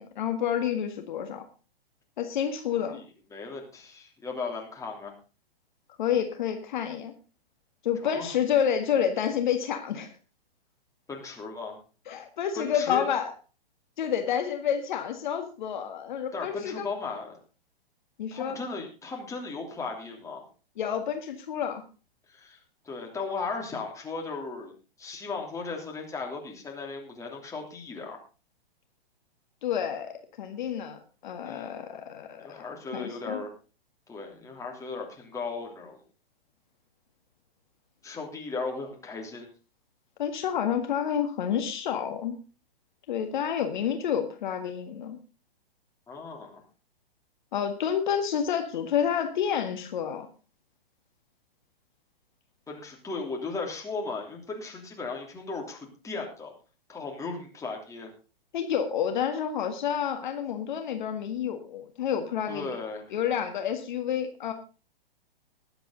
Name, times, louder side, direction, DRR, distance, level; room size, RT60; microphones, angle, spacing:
voice 1, 0.0-1.4 2.2-3.0 6.0-7.1 7.8-10.1 12.1-13.3 14.0-16.9 18.2-18.6 20.8-21.8 29.6-32.6 32.9-33.4 40.2-42.4 43.1-45.2 47.5-50.3 58.5-62.8 63.1-64.5, left 8 dB, 50° left, 6 dB, 1.8 m, -29 dB
voice 2, 2.7-3.0 3.3-5.1 8.0-8.3 11.1-11.8 12.5-13.1 16.3-17.4 18.3-20.4 22.3-22.6 22.8-24.7 25.0-28.2 31.4-31.8 32.4-33.5 34.1-36.0 38.0-39.5 46.1-46.6 52.7-56.5 56.9-58.1 62.5-63.0, left 4 dB, 10° left, 1 dB, 3.1 m, -36 dB
20.5 x 8.1 x 3.9 m, 0.34 s
figure-of-eight pair, 115°, 30 cm